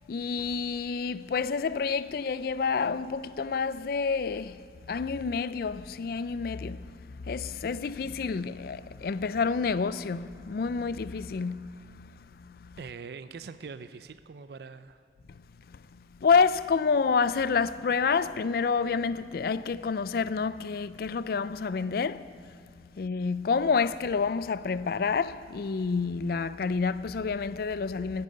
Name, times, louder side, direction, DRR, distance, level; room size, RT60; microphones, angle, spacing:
voice 1, 0.1-12.8 15.3-15.4 15.7-22.6 22.9-28.2, left 5 dB, 55° left, 0.4 m, -29 dB
voice 2, 12.8-15.0, right 5 dB, 60° right, 0.4 m, -43 dB
10.5 x 9.3 x 9.8 m
head